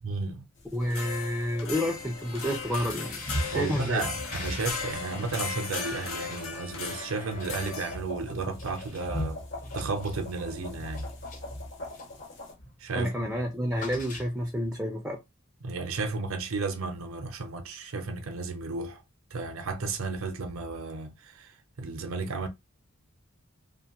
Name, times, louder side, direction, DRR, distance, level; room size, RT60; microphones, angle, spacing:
voice 1, 0.0-0.4 3.5-9.4 9.7-11.1 12.8-13.4 15.6-19.0 19.3-21.5 21.8-22.5, right 3 dB, 80° right, 0.6 m, -33 dB
sound 1, 0.6-12.5, left 2 dB, 60° left, 1.0 m, -46 dB
voice 2, 0.7-3.2 3.5-4.0 12.9-15.2, equal, 5° right, 0.4 m, -29 dB
sound 2, 0.8-8.0, left 4 dB, 85° left, 0.7 m, -37 dB
sound 3, 2.3-12.2 12.6-12.9 13.1-14.7, left 1 dB, 40° left, 0.7 m, -40 dB
2.5 x 2.3 x 2.8 m
head